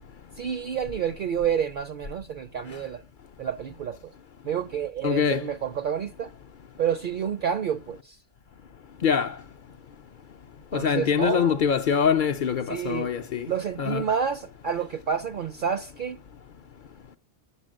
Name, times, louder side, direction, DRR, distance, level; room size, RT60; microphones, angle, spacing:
voice 1, 0.4-3.0 3.4-4.1 4.4-6.3 6.8-8.2 10.7-11.6 12.7-13.1 13.5-16.2, right 8 dB, 55° right, 0.6 m, -29 dB
voice 2, 5.0-5.4 9.0-9.3 10.7-13.5 13.8-14.0, left 7 dB, 55° left, 0.6 m, -24 dB
7.3 x 6.4 x 6.2 m
omnidirectional pair, 1.2 m